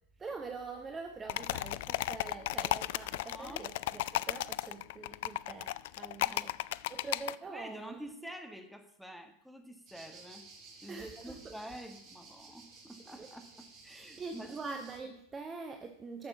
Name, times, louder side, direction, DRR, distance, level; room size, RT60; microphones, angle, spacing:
voice 1, 0.2-6.6 6.9-8.0 10.9-11.5 13.2-13.3 13.9-16.3, right 4 dB, 15° right, 4 dB, 1.0 m, -44 dB
sound 1, 1.3-7.4, left 16 dB, 50° left, 0.3 m, -35 dB
voice 2, 3.3-3.7 6.2-6.4 7.5-10.5 10.8-14.5, equal, ahead, 4 dB, 1.6 m, -48 dB
sound 2, 9.9-15.0, right 4 dB, 35° right, 2.7 m, -54 dB
12.0 x 6.6 x 6.1 m, 0.72 s
figure-of-eight pair, 90°, 0 cm